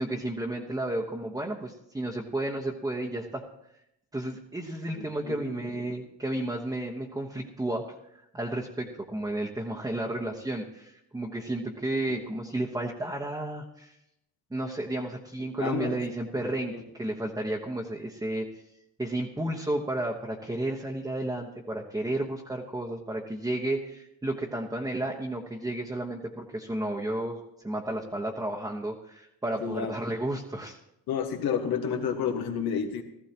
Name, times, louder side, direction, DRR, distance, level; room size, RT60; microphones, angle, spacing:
voice 1, 0.0-3.4 4.1-13.9 14.5-18.6 19.0-27.4 27.6-30.8, right 1 dB, 10° right, -1 dB, 1.2 m, -32 dB
voice 2, 4.9-5.5 15.6-16.0 16.7-16.8 29.6-29.9 31.1-33.0, left 7 dB, 75° left, 4 dB, 1.6 m, -30 dB
16.0 x 14.0 x 2.9 m, 0.83 s
cardioid pair, 95°, 37 cm